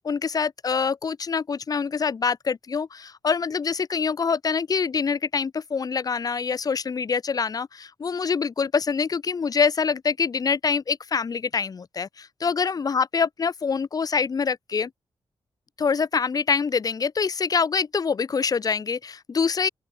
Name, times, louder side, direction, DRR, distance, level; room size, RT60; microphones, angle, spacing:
voice 1, 0.0-14.9 15.8-19.7, left 5 dB, 40° left, 0.7 m, -25 dB
open air
wide cardioid pair, 110°, 10 cm